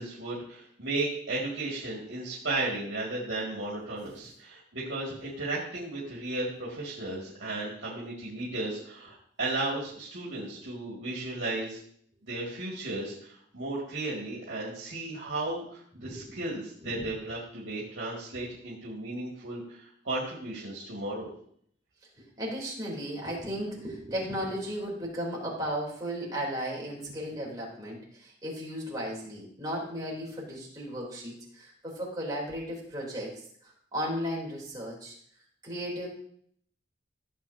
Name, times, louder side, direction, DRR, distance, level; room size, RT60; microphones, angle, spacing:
voice 1, 0.0-11.8 12.2-21.3, right 2 dB, 80° right, -5 dB, 2.3 m, -35 dB
voice 2, 16.0-16.4 16.8-17.0 22.2-33.3 33.6-35.1 35.6-36.1, equal, 20° right, -4 dB, 3.4 m, -35 dB
15.0 x 7.6 x 2.8 m, 0.63 s
head